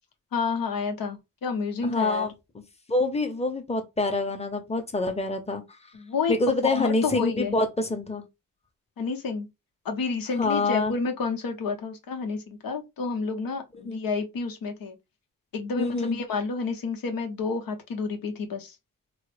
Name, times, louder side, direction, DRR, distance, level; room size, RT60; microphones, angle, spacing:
voice 1, 0.3-2.3 5.9-6.3 6.7-7.5 9.0-9.5 9.8-15.0 15.5-18.7, left 4 dB, 85° left, 0.9 m, -30 dB
voice 2, 1.9-2.6 2.9-5.6 6.3-8.2 10.4-11.0 13.8-14.0 15.8-16.2, left 2 dB, 20° left, 0.8 m, -26 dB
3.8 x 2.1 x 3.2 m
cardioid pair, 85°, 34 cm